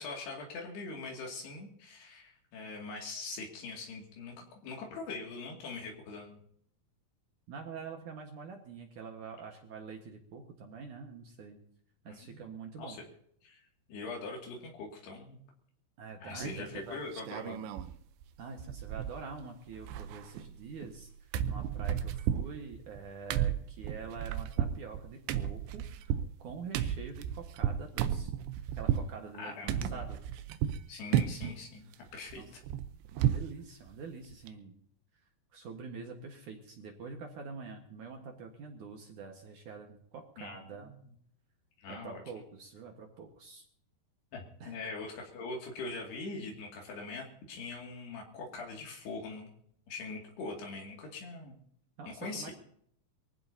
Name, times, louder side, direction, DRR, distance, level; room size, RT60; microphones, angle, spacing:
voice 1, 0.0-6.4 12.1-12.4 12.8-13.0 13.4-15.4 16.2-17.6 29.4-30.1 30.9-32.6 40.4-40.9 41.8-42.2 44.3-49.5 49.9-51.5 52.1-52.5, left 3 dB, 70° left, 0 dB, 4.4 m, -42 dB
voice 2, 7.5-11.6 12.0-13.0 16.0-17.0 18.4-26.1 26.4-30.2 32.4-32.5 33.1-34.8 35.5-40.9 41.9-43.6 44.6-44.8 52.0-52.5, right 5 dB, 60° right, 3 dB, 2.4 m, -46 dB
sound 1, 16.4-16.8 17.1-17.9 18.2-18.3 18.6-19.4 19.7-21.0 21.3-29.1 29.7-30.8 31.1-31.6 31.9-33.5 33.9-34.0 34.3-34.5, right 10 dB, 85° right, 3.1 m, -33 dB
24.0 x 15.5 x 2.8 m, 0.65 s
omnidirectional pair, 5.0 m